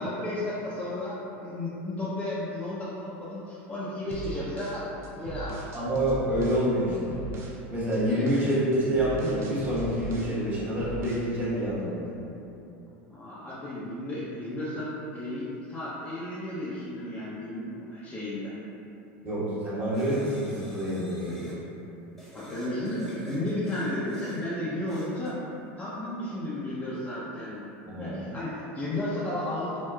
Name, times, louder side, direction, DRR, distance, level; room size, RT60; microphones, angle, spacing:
voice 1, 0.0-4.9 5.2-5.7 8.0-8.2 13.1-18.6 22.3-25.5 25.8-27.7 28.0-29.8, left 1 dB, 20° left, -10 dB, 0.6 m, -33 dB
sound 1, 4.1-6.7 7.1-7.6 7.9-10.4 10.8-11.3, right 3 dB, 40° right, 0.5 m, -38 dB
voice 2, 5.7-7.1 7.7-12.1 19.2-21.5 27.8-28.3, equal, 25° right, -8 dB, 1.1 m, -27 dB
sound 2, 19.9-21.6 22.2-24.4 24.9-25.4, right 1 dB, ahead, 1.0 m, -45 dB
4.4 x 2.2 x 2.3 m, 2.9 s
supercardioid pair, 110°, 7 cm